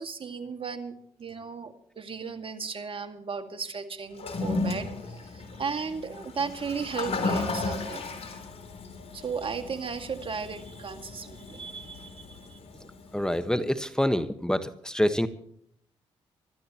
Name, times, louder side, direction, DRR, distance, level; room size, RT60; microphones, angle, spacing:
voice 1, 0.0-8.1 9.1-12.6, right 5 dB, 45° right, 8 dB, 2.1 m, -36 dB
Toilet flush, 4.1-13.4, left 3 dB, 55° left, 3.5 m, -35 dB
voice 2, 13.1-15.3, equal, 5° left, 10 dB, 1.4 m, -26 dB
26.0 x 12.5 x 3.0 m, 0.68 s
supercardioid pair, 55°, 12 cm